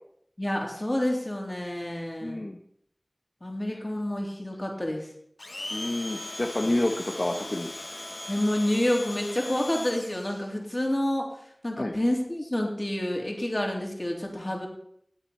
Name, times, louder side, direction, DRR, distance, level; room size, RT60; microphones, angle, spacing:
voice 1, 0.4-2.4 3.4-5.1 8.3-11.3 11.6-14.7, left 1 dB, 35° left, 0 dB, 3.2 m, -28 dB
voice 2, 2.2-2.6 5.7-7.7 11.8-11.9, left 1 dB, 55° left, 2 dB, 1.1 m, -29 dB
Domestic sounds home sounds, 5.4-10.5, left 2 dB, 70° left, 1.4 m, -39 dB
19.0 x 8.1 x 4.3 m, 0.69 s
wide cardioid pair, 45°, 0 cm